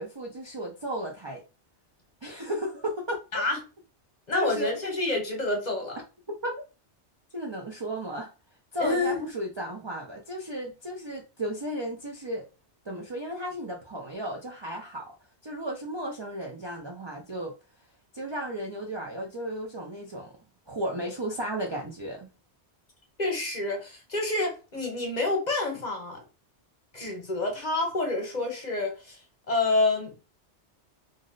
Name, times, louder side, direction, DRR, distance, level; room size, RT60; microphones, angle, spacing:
voice 1, 0.0-1.4 2.2-3.4 4.3-4.8 6.3-6.6 7.3-8.3 8.7-12.5 12.8-15.1 15.4-17.5 18.1-20.3 20.7-22.3, right 1 dB, 40° right, 0.4 m, -34 dB
voice 2, 4.3-6.0 8.8-9.2 23.2-26.2 26.9-29.2 29.5-30.1, left 2 dB, 40° left, 1.0 m, -28 dB
2.6 x 2.0 x 3.8 m
omnidirectional pair, 1.1 m